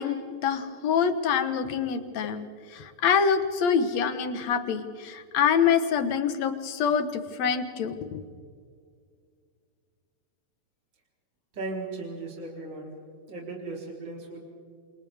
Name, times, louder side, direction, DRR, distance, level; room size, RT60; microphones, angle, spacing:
voice 1, 0.0-8.2, left 7 dB, 65° left, 9 dB, 2.4 m, -26 dB
voice 2, 11.5-12.9 13.3-14.4, right 3 dB, 35° right, -3 dB, 4.5 m, -36 dB
28.5 x 28.5 x 3.6 m, 2.1 s
omnidirectional pair, 3.5 m